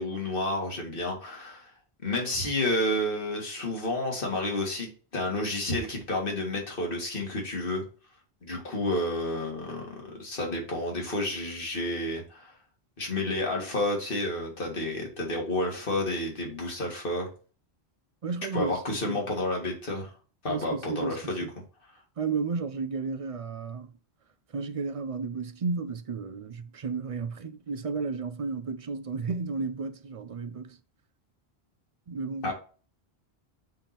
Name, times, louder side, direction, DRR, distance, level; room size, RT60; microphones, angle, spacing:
voice 1, 0.0-1.7 2.0-7.8 8.4-12.5 13.0-17.3 18.5-20.1 20.4-21.4 32.4-32.5, left 1 dB, 55° left, 2.1 m, -30 dB
voice 2, 18.2-19.2 20.5-21.5 22.2-23.9 24.5-30.8 32.1-32.5, right 4 dB, 45° right, 0.5 m, -33 dB
7.6 x 3.6 x 4.3 m
omnidirectional pair, 1.1 m